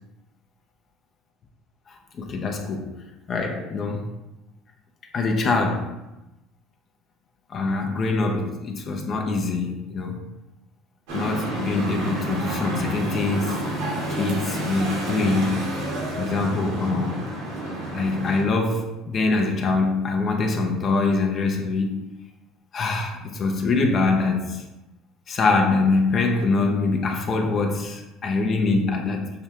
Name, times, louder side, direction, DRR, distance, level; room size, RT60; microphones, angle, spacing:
voice 1, 2.2-2.9 3.3-4.1 5.1-5.9 7.5-10.2 11.1-13.6 14.1-15.6 16.2-17.2 17.9-22.0 22.7-24.6 25.3-29.3, left 3 dB, 40° left, 3 dB, 0.6 m, -24 dB
sound 1, 11.1-18.4, right 1 dB, 85° right, 1.4 m, -29 dB
6.5 x 2.3 x 2.8 m, 0.97 s
supercardioid pair, 100°, 0 cm